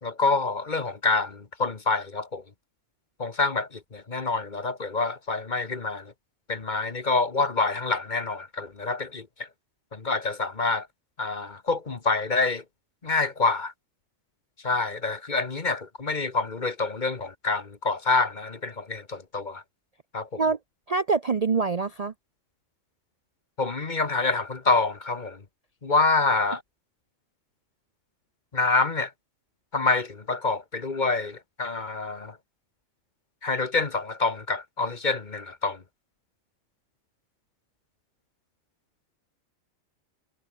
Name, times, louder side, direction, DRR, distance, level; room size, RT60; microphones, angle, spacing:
voice 1, 0.0-2.4 3.2-6.1 6.5-9.5 9.9-10.9 11.2-12.6 13.0-13.7 14.6-19.6 20.1-20.4 23.6-25.4 25.8-26.6 28.5-29.1 29.7-32.4 33.4-35.8, left 3 dB, 35° left, 1.4 m, -27 dB
voice 2, 20.9-22.1, right 4 dB, 40° right, 0.6 m, -25 dB
omnidirectional pair, 1.4 m